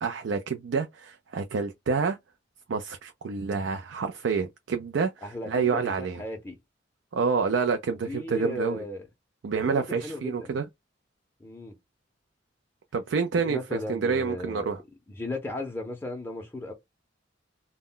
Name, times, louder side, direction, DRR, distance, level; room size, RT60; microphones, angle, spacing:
voice 1, 0.0-2.2 2.7-6.2 7.1-8.8 9.4-10.7 12.9-14.8, right 5 dB, 75° right, 0.4 m, -28 dB
voice 2, 5.2-6.6 8.1-9.1 9.6-10.5 11.4-11.8 13.4-14.8 15.2-16.7, left 2 dB, 10° left, 0.5 m, -36 dB
2.1 x 2.1 x 3.6 m
head